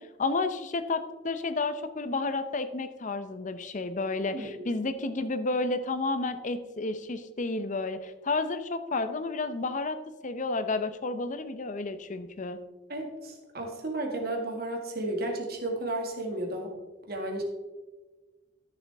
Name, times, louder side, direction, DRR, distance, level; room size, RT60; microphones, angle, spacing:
voice 1, 0.0-10.0 10.2-12.6, left 3 dB, 40° left, 11 dB, 0.6 m, -31 dB
voice 2, 4.3-4.7 12.9-16.7 17.1-17.4, right 1 dB, 55° right, 2 dB, 1.9 m, -33 dB
13.0 x 6.9 x 3.5 m, 1.2 s
head